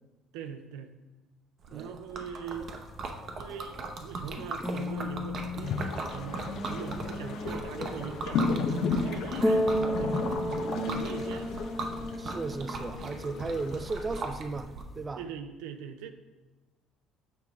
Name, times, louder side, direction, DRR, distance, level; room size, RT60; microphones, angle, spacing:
voice 1, 0.3-0.9 1.7-2.7 3.4-10.5 10.8-11.6 13.0-13.1 15.2-16.1, right 8 dB, 90° right, 7 dB, 0.5 m, -42 dB
Liquid, 1.6-14.8, right 3 dB, 50° right, 0.7 m, -39 dB
sound 1, 2.5-15.1, equal, 5° left, 0.8 m, -35 dB
sound 2, 5.6-14.3, left 4 dB, 65° left, 0.7 m, -34 dB
voice 2, 12.1-15.2, right 3 dB, 25° right, 10 dB, 0.4 m, -35 dB
6.8 x 4.8 x 3.5 m, 1.2 s
supercardioid pair, 95°, 0 cm